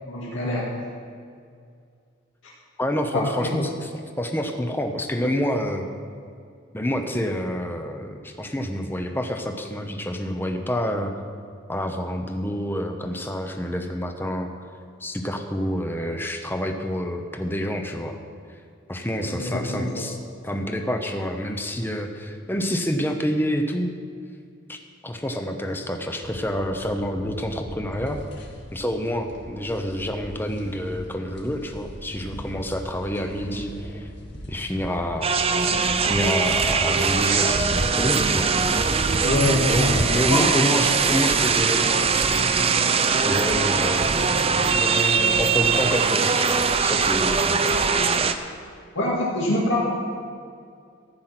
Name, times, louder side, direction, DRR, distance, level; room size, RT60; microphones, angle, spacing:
voice 1, 0.1-0.7 3.1-3.6 19.2-20.0 39.2-40.4 48.9-49.8, left 1 dB, 75° left, -6 dB, 2.3 m, -25 dB
voice 2, 2.8-3.9 4.2-5.9 6.7-11.1 11.7-14.5 15.0-18.2 18.9-20.2 20.4-23.9 24.7-24.8 25.0-28.2 28.7-34.1 34.5-35.3 36.0-38.7 39.7-42.5 43.2-47.8, equal, 10° left, 4 dB, 0.9 m, -28 dB
sound 1, 26.2-40.4, equal, 60° left, 2.2 m, -42 dB
sound 2, 35.2-48.3, right 5 dB, 30° right, 0.6 m, -21 dB
14.5 x 9.4 x 5.9 m, 2.3 s
head